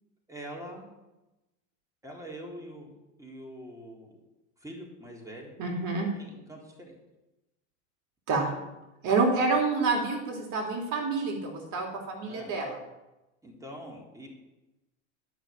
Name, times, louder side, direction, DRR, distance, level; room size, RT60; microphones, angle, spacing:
voice 1, 0.3-0.9 2.0-2.9 3.2-4.2 4.6-5.6 6.1-6.9 8.3-8.6 12.3-12.5 13.4-14.3, right 1 dB, 10° right, -1 dB, 3.7 m, -44 dB
voice 2, 5.6-6.1 8.3-8.5 9.0-12.8, right 3 dB, 50° right, 2 dB, 3.0 m, -28 dB
12.0 x 6.4 x 8.7 m, 1.0 s
supercardioid pair, 105°, 38 cm